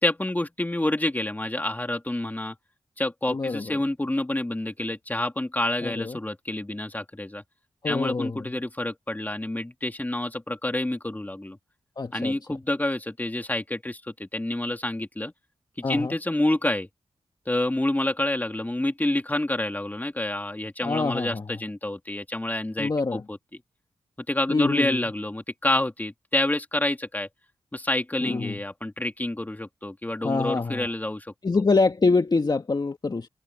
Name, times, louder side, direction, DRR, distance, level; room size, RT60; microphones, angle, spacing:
voice 1, 0.0-2.5 3.0-7.4 7.8-11.6 12.1-15.3 15.9-16.9 17.5-23.4 24.3-27.3 27.7-31.3, left 1 dB, 15° left, 3.1 m, -28 dB
voice 2, 3.3-3.8 5.8-6.2 7.8-8.4 12.0-12.3 15.8-16.2 20.8-21.5 22.8-23.2 24.5-25.0 28.2-28.6 30.2-30.9 31.4-33.3, left 3 dB, 40° left, 1.7 m, -25 dB
cardioid pair, 60°, 10 cm